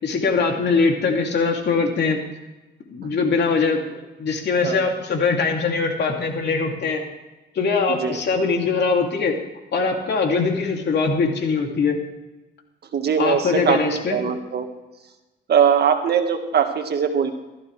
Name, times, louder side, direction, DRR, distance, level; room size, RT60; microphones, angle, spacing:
voice 1, 0.0-2.2 2.9-3.8 4.2-7.0 7.5-9.4 9.7-12.0 13.2-14.2, left 4 dB, 60° left, 2 dB, 2.8 m, -22 dB
voice 2, 4.6-5.0 7.9-8.2 12.9-13.8 14.1-14.7 15.5-17.3, right 7 dB, 55° right, 6 dB, 1.7 m, -21 dB
17.0 x 14.0 x 3.4 m, 1.1 s
cardioid pair, 90°, 20 cm